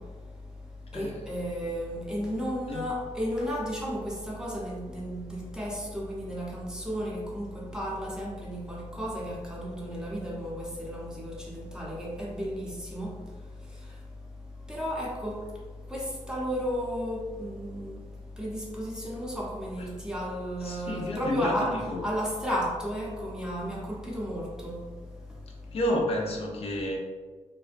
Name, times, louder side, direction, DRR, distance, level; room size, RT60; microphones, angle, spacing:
voice 1, 0.9-13.1 14.7-15.4 15.9-17.9 18.4-24.8, equal, 5° right, -5 dB, 0.5 m, -33 dB
voice 2, 20.6-22.0 25.7-27.0, left 1 dB, 55° left, 0 dB, 0.4 m, -30 dB
2.5 x 2.1 x 2.4 m, 1.4 s
wide cardioid pair, 125°, 12 cm